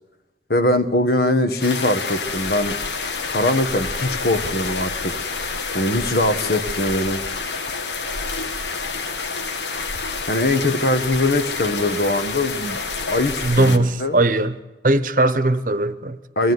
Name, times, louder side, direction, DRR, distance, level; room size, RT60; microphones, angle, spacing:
voice 1, 0.5-2.8 3.3-5.1 5.7-7.2 10.3-12.8 13.0-14.2 16.3-16.5, left 1 dB, 55° left, 1.5 m, -21 dB
sound 1, 1.6-13.8, left 4 dB, 75° left, 1.7 m, -28 dB
voice 2, 13.4-14.5 14.8-16.2, right 2 dB, 45° right, 1.0 m, -19 dB
24.0 x 17.0 x 9.6 m
head